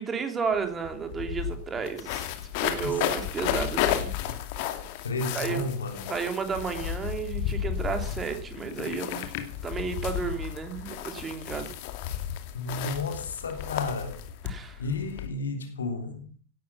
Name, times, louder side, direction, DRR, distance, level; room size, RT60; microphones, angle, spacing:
voice 1, 0.0-2.3 2.6-4.1 5.3-5.6 6.1-9.3 9.6-11.7 14.4-14.8, right 6 dB, 20° right, 3.1 m, -32 dB
sound 1, 0.5-0.6 0.8-15.3, left 11 dB, 45° left, 2.4 m, -33 dB
voice 2, 5.0-6.1 12.5-14.2 14.8-16.2, left 3 dB, 70° left, 3.4 m, -32 dB
17.5 x 12.0 x 5.7 m
figure-of-eight pair, 90°, 0 cm